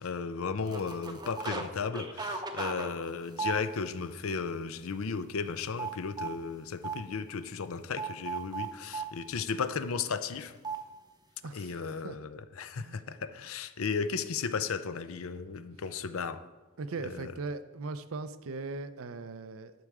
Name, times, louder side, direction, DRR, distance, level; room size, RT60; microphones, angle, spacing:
voice 1, 0.0-10.6 11.5-16.4 17.0-17.3, left 5 dB, 70° left, 12 dB, 0.5 m, -35 dB
sound 1, 0.7-1.7 1.9-4.0 4.5-4.7 5.0-6.4 6.8-7.0 8.0-9.1 10.6-10.8, right 5 dB, 20° right, 0.7 m, -36 dB
voice 2, 11.4-12.2 12.8-13.0 16.8-19.7, right 3 dB, 70° right, 12 dB, 0.5 m, -39 dB
11.0 x 6.6 x 4.8 m, 1.2 s
head